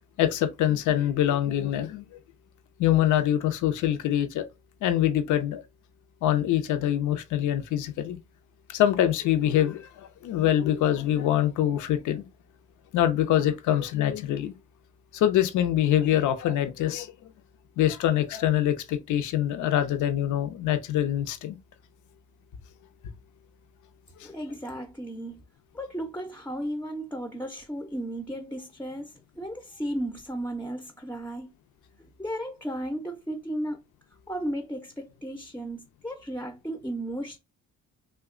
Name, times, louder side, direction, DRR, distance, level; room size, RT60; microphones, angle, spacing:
voice 1, 0.2-2.0 2.8-4.4 4.8-5.6 6.2-8.2 8.7-12.2 12.9-14.5 15.1-17.1 17.8-21.6 24.2-24.3, left 11 dB, 80° left, 0.6 m, -24 dB
voice 2, 24.2-25.4 25.7-31.5 32.0-33.8 34.3-37.4, right 1 dB, 5° left, 0.5 m, -34 dB
2.9 x 2.2 x 3.6 m
cardioid pair, 90°, 30 cm